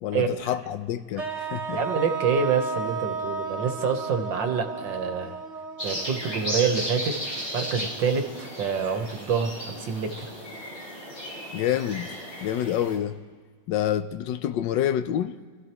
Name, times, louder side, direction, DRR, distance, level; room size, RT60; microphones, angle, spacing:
voice 1, 0.0-1.8 11.5-12.1 12.4-13.2 13.7-15.4, left 10 dB, 80° left, 1.4 m, -27 dB
sound 1, 1.2-7.2, right 4 dB, 40° right, 2.1 m, -33 dB
voice 2, 1.7-5.4 5.8-7.2 7.5-10.3, right 6 dB, 85° right, 1.9 m, -27 dB
sound 2, 5.8-13.0, equal, 35° left, 5.3 m, -35 dB
25.5 x 14.5 x 3.0 m
omnidirectional pair, 2.0 m